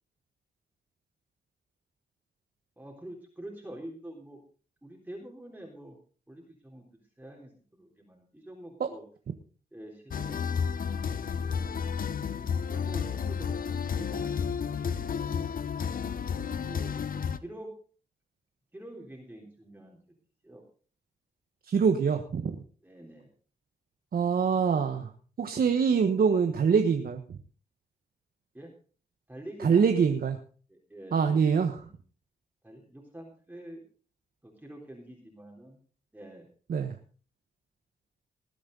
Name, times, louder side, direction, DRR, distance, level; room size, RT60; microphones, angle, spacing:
voice 1, 2.8-4.4 4.8-6.0 6.3-6.8 7.2-9.0 9.7-10.7 11.4-11.8 12.5-15.5 16.3-17.7 18.7-20.0 20.4-20.6 22.8-23.3 28.5-28.7 29.3-30.1 30.7-31.5 31.8-31.9 32.6-33.8 34.4-35.8 36.1-36.5, right 1 dB, 10° right, -1 dB, 3.8 m, -46 dB
sound 1, 10.1-17.4, left 7 dB, 60° left, 0.9 m, -31 dB
voice 2, 21.7-22.5 24.1-25.1 25.4-27.2 29.6-30.4 31.1-31.8 36.7-36.9, right 6 dB, 65° right, 5 dB, 1.3 m, -24 dB
20.0 x 8.6 x 4.0 m, 0.40 s
cardioid pair, 70°, 17 cm